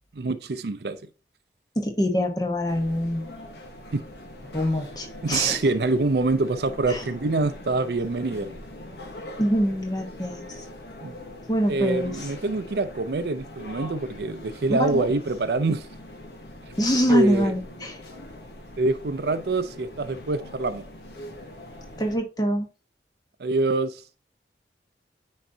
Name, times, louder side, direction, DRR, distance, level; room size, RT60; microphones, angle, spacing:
voice 1, 0.2-1.0 3.9-4.0 5.2-8.5 11.0-11.1 11.7-15.9 17.1-17.5 18.8-20.8 23.4-24.0, right 3 dB, 65° right, 0.5 m, -25 dB
voice 2, 1.8-3.3 4.5-5.6 6.9-7.0 9.4-10.5 11.5-12.2 14.7-15.1 16.8-18.0 22.0-22.7, equal, 20° left, 1.0 m, -24 dB
sound 1, 2.7-22.2, left 1 dB, 70° left, 1.2 m, -42 dB
9.2 x 4.0 x 2.7 m
head